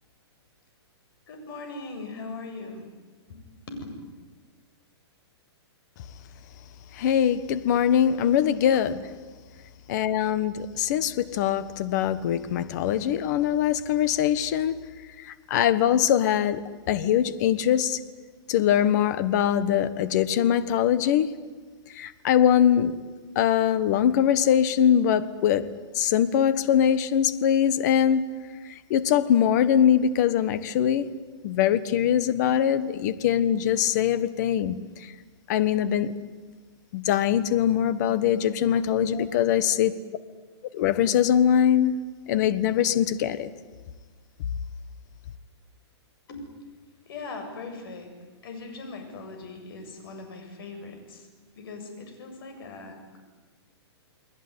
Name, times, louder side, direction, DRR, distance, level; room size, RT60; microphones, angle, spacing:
voice 1, 1.3-2.8 3.3-3.4 3.7-3.8 38.9-39.3 46.3-46.4 47.0-48.1 48.4-51.3 51.6-53.2, left 3 dB, 55° left, 7.8 m, -39 dB
voice 2, 7.0-9.0 9.9-14.8 15.5-18.0 18.5-21.3 22.0-23.0 23.3-25.7 25.9-28.3 28.9-31.1 31.4-34.8 35.5-36.1 36.9-39.9 40.7-41.9 42.3-43.5, left 9 dB, 40° left, 1.4 m, -22 dB
29.5 x 20.5 x 9.8 m
hypercardioid pair, 160°, 14 cm